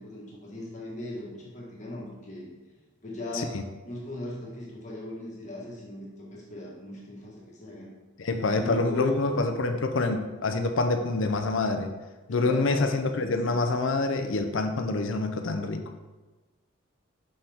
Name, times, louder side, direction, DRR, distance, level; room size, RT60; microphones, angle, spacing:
voice 1, 0.0-2.5 3.0-3.6 3.8-7.9 8.5-9.3 12.3-13.6, left 1 dB, 35° left, -3 dB, 1.5 m, -38 dB
voice 2, 8.2-11.9 12.3-15.8, left 3 dB, 70° left, 7 dB, 0.6 m, -26 dB
5.6 x 5.6 x 3.5 m, 1.2 s
head